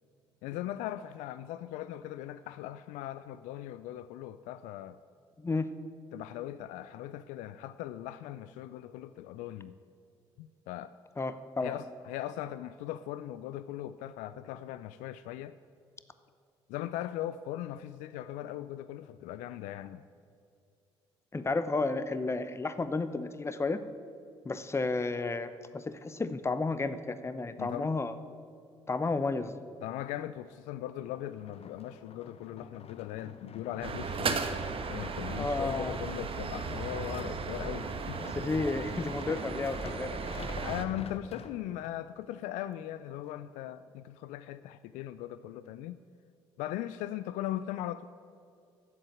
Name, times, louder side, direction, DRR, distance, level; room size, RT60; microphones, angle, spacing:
voice 1, 0.4-5.0 6.1-9.7 10.4-10.9 11.6-15.5 16.7-20.0 27.6-27.9 29.8-34.4 34.9-38.2 40.6-46.0 46.6-48.1, left 13 dB, 75° left, 14 dB, 0.4 m, -39 dB
voice 2, 5.4-5.7 11.2-11.7 21.3-23.8 24.4-28.1 28.9-29.5 35.3-36.0 38.2-40.1, left 3 dB, 20° left, 12 dB, 0.8 m, -32 dB
sound 1, 31.0-42.0 42.6-42.7, left 5 dB, 50° left, 1.0 m, -48 dB
sound 2, 33.8-40.9, right 4 dB, 45° right, 1.2 m, -36 dB
10.5 x 7.9 x 9.0 m, 2.4 s
hypercardioid pair, 50°, 13 cm